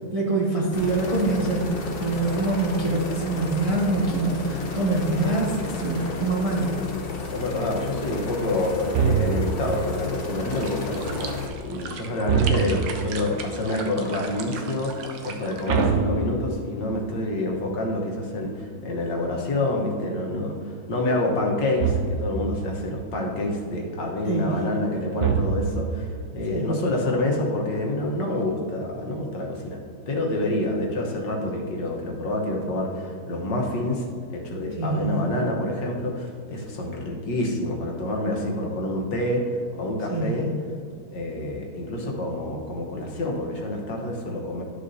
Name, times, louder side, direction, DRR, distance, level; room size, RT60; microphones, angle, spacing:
voice 1, 0.1-6.7 24.3-24.6 26.5-26.7 34.8-35.2 40.1-40.5, right 3 dB, 30° right, -3 dB, 0.7 m, -25 dB
sound 1, 0.7-11.5, left 4 dB, 45° left, 0.8 m, -32 dB
voice 2, 7.3-11.3 11.6-29.8 30.1-34.1 34.3-40.5 41.1-44.6, left 1 dB, 75° left, -1 dB, 1.8 m, -27 dB
sound 2, 8.9-9.7 12.2-13.1 15.7-16.8 21.8-22.5 25.2-26.0, right 6 dB, 65° right, 0.7 m, -24 dB
sound 3, 10.5-15.9, right 5 dB, 90° right, 1.5 m, -38 dB
12.0 x 6.6 x 2.7 m, 2.2 s
omnidirectional pair, 1.9 m